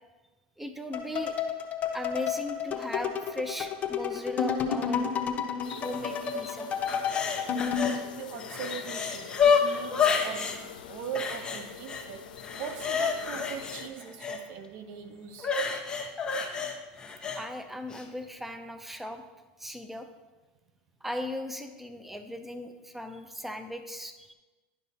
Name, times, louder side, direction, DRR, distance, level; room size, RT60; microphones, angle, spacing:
voice 1, 0.6-1.4 1.9-5.3 5.8-6.7 14.3-14.4 17.3-19.2 19.6-20.1 21.0-24.3, left 1 dB, 5° right, 0.6 m, -37 dB
sound 1, 0.9-8.0, left 7 dB, 35° left, 0.7 m, -31 dB
sound 2, 5.6-13.9, left 8 dB, 90° left, 0.5 m, -45 dB
sound 3, 6.9-8.0 8.3-10.6 11.1-12.0 12.4-14.4 15.4-17.4 17.9-18.0, left 6 dB, 20° left, 1.0 m, -29 dB
voice 2, 8.1-15.5, right 7 dB, 60° right, 0.6 m, -40 dB
10.5 x 5.3 x 2.8 m
hypercardioid pair, 100°, 4 cm